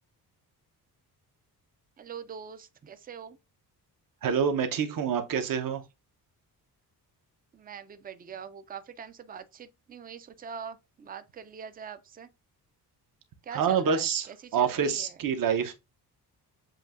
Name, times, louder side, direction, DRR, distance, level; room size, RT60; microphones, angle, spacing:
voice 1, 2.0-3.4 7.5-12.3 13.4-15.1, right 7 dB, 25° right, 0.3 m, -43 dB
voice 2, 4.2-5.8 13.5-15.7, right 7 dB, 55° right, 0.8 m, -27 dB
7.5 x 2.7 x 2.5 m
wide cardioid pair, 155°, 40 cm